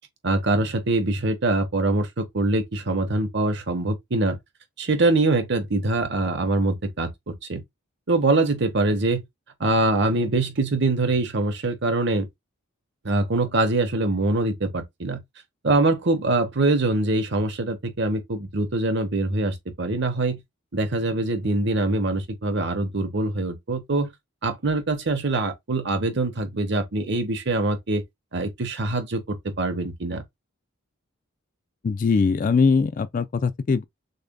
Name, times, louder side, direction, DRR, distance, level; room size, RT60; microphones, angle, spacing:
voice 1, 0.2-4.4 4.8-7.6 8.1-9.2 9.6-12.3 13.0-15.2 15.6-20.4 20.7-24.1 24.4-28.0 28.3-30.2, right 2 dB, 55° right, 1.0 m, -24 dB
voice 2, 31.8-33.8, left 5 dB, 40° left, 0.3 m, -21 dB
6.6 x 2.5 x 2.2 m
head